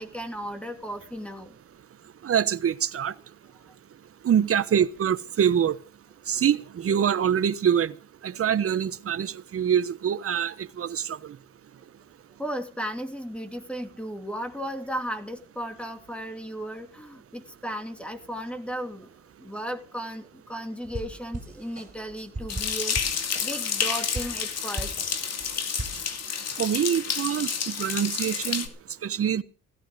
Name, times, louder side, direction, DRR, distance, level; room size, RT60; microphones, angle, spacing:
voice 1, 0.0-1.6 12.4-19.1 19.4-24.9, equal, 5° left, 2.9 m, -35 dB
voice 2, 2.2-3.1 4.2-5.8 6.3-7.9 8.2-11.4 26.6-28.7 29.0-29.4, right 8 dB, 50° right, 1.2 m, -25 dB
sound 1, 20.8-23.9 24.1-26.2, right 2 dB, 25° right, 4.8 m, -37 dB
sound 2, 22.5-28.7, left 6 dB, 60° left, 2.6 m, -30 dB
16.0 x 15.0 x 5.1 m
cardioid pair, 90°, 30 cm